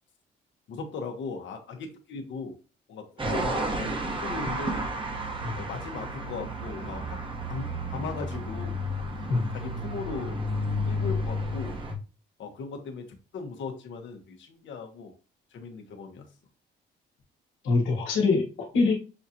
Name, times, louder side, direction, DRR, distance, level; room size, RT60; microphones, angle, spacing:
voice 1, 0.7-2.5 2.9-4.8 5.5-7.2 7.5-8.8 9.5-10.4 10.9-11.8 12.4-15.1 15.5-16.3, left 4 dB, 70° left, 4 dB, 1.1 m, -38 dB
sound 1, 3.2-11.9, equal, 25° right, 1.0 m, -32 dB
voice 2, 17.6-18.9, left 3 dB, 90° left, 0 dB, 1.4 m, -24 dB
6.3 x 2.4 x 2.8 m, 0.33 s
cardioid pair, 90°, 20 cm